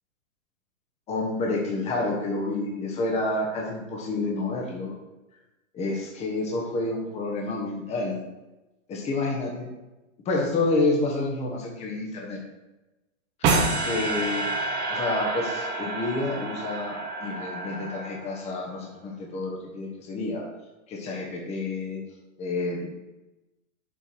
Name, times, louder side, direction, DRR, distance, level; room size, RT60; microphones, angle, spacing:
voice 1, 1.1-5.0 5.7-8.2 8.9-9.7 10.2-12.4 13.4-14.4 14.9-20.5 20.9-22.0 22.4-22.8, left 2 dB, 15° left, -1 dB, 1.2 m, -29 dB
sound 1, 13.4-18.6, right 3 dB, 25° right, 1.1 m, -28 dB
7.4 x 4.6 x 4.5 m, 1.0 s
hypercardioid pair, 150°, 40 cm